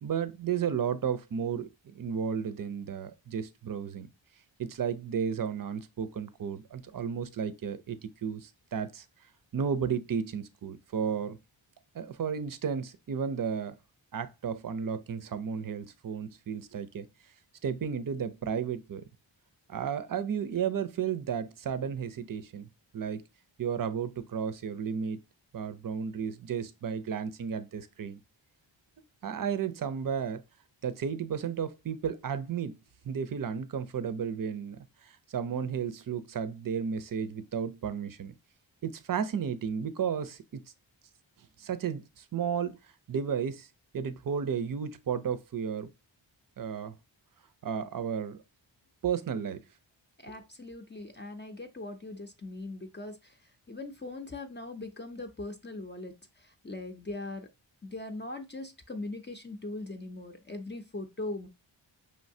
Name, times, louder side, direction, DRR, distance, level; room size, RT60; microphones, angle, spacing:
voice 1, 0.0-4.1 4.6-9.0 9.5-11.4 11.9-13.8 14.1-17.1 17.6-19.0 19.7-22.7 22.9-23.2 23.6-25.2 25.5-28.2 29.2-30.4 30.8-32.8 33.0-38.3 38.8-40.6 41.6-42.8 43.1-43.7 43.9-45.9 46.6-46.9 47.6-48.4 49.0-49.6, right 7 dB, 45° right, 0.6 m, -33 dB
voice 2, 50.2-53.4 53.7-57.5 57.8-61.5, left 2 dB, 25° left, 0.6 m, -40 dB
5.4 x 3.2 x 2.7 m
wide cardioid pair, 75°, 47 cm